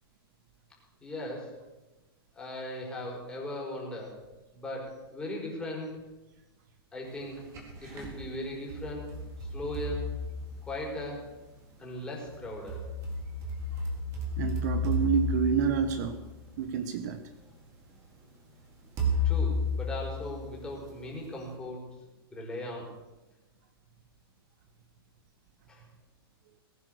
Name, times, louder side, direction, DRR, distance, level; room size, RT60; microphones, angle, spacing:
voice 1, 1.0-1.6 2.3-4.2 4.5-6.0 6.9-7.4 7.8-10.1 10.7-11.3 11.8-12.8 19.2-21.9 22.3-22.9 25.7-25.8, left 1 dB, 5° left, -2 dB, 4.7 m, -38 dB
sound 1, 7.2-8.2 8.7-11.1 12.3-16.7 17.5-17.6 19.0-20.9, left 2 dB, 25° right, 4.0 m, -32 dB
voice 2, 14.4-16.2 16.6-17.2, right 7 dB, 45° right, 9 dB, 1.3 m, -28 dB
20.5 x 9.9 x 6.5 m, 1.1 s
hypercardioid pair, 160°, 13 cm